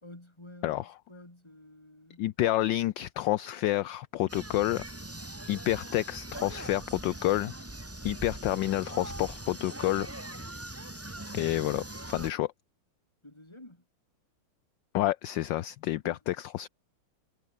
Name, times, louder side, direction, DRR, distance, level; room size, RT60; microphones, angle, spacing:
voice 1, 0.0-2.3 13.2-13.9 16.0-16.2, left 1 dB, 10° left, 4.1 m, -50 dB
voice 2, 2.2-4.8 5.5-7.5 8.0-10.1 11.3-12.5 14.9-16.7, left 15 dB, 70° left, 1.2 m, -29 dB
sound 1, 4.3-12.3, right 1 dB, 10° right, 1.0 m, -41 dB
omnidirectional pair, 2.3 m